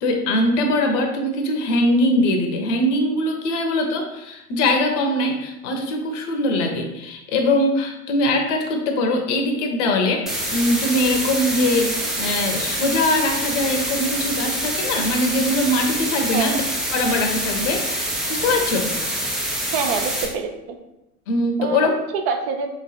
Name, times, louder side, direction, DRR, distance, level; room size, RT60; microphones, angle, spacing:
voice 1, 0.0-10.2 10.5-16.6 16.9-17.8 18.3-18.9 21.3-21.9, left 1 dB, 50° left, 3 dB, 0.9 m, -21 dB
sound 1, 10.3-20.3, right 1 dB, ahead, 0.4 m, -26 dB
voice 2, 16.3-16.6 19.7-20.8 21.6-22.7, right 5 dB, 45° right, 4 dB, 0.7 m, -26 dB
3.3 x 3.2 x 4.1 m, 0.91 s
figure-of-eight pair, 90°, 46 cm